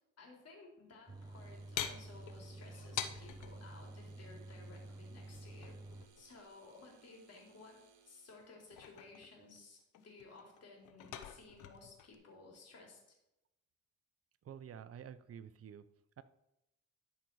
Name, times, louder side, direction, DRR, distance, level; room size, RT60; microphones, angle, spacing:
voice 1, 0.2-5.8 6.2-13.0, left 3 dB, 55° left, 0 dB, 3.8 m, -57 dB
sound 1, 1.1-6.1, right 2 dB, 15° right, 0.6 m, -50 dB
sound 2, 1.1-8.5, right 7 dB, 75° right, 1.4 m, -67 dB
sound 3, 1.8-3.6 5.3-6.4 8.4-9.6 9.9-12.2, left 10 dB, 80° left, 0.9 m, -45 dB
voice 2, 14.4-15.8 16.2-16.3, right 8 dB, 50° right, 13 dB, 0.7 m, -49 dB
12.5 x 5.4 x 4.7 m, 0.90 s
cardioid pair, 90°, 30 cm